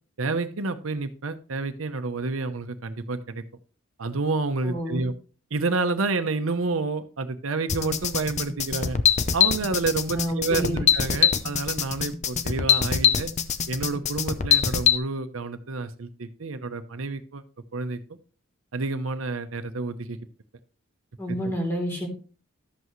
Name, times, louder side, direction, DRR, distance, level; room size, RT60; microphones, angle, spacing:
voice 1, 0.2-3.4 4.0-5.1 5.5-9.0 9.3-13.3 13.7-17.4 17.7-18.0 18.7-20.2, right 3 dB, 90° right, 9 dB, 0.8 m, -29 dB
voice 2, 4.6-5.0 10.1-10.8 21.2-22.1, equal, 10° left, 0 dB, 3.2 m, -29 dB
sound 1, 7.7-15.0, left 7 dB, 35° left, 0.6 m, -23 dB
12.0 x 8.1 x 3.1 m, 0.38 s
head